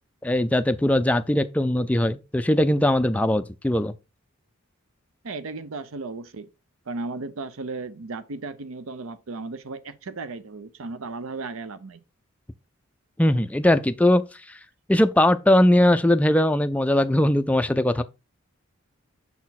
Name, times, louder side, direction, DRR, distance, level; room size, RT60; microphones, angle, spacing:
voice 1, 0.2-3.9 13.2-14.2 14.9-18.0, left 1 dB, 5° left, 0.3 m, -20 dB
voice 2, 5.2-6.5 6.9-12.0, right 3 dB, 75° right, 0.6 m, -35 dB
6.9 x 4.2 x 4.1 m
head